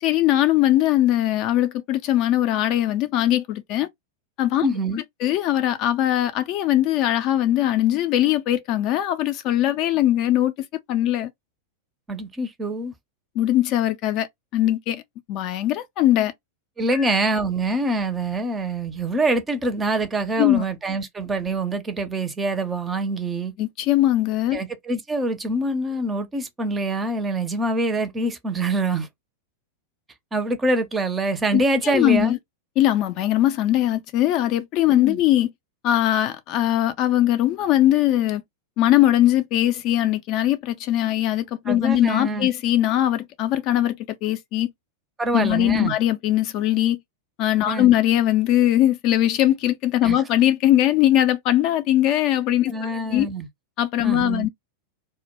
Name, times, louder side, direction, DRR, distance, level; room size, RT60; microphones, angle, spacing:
voice 1, 0.0-3.9 4.4-4.7 5.2-11.3 13.4-14.3 14.5-15.0 15.3-16.3 16.9-17.1 20.4-20.6 23.6-24.6 31.5-31.6 31.9-32.4 32.8-35.5 35.8-38.4 38.8-44.7 45.3-47.0 47.4-53.3 53.8-54.5, left 13 dB, 40° left, 0.3 m, -20 dB
voice 2, 4.6-5.0 12.1-12.9 16.8-23.5 24.5-29.1 30.3-32.4 34.9-35.2 41.7-42.5 45.2-45.9 47.7-47.9 50.0-50.2 52.7-53.5 54.0-54.5, right 2 dB, 15° right, 0.5 m, -25 dB
2.1 x 2.1 x 2.9 m
figure-of-eight pair, 90°, 0 cm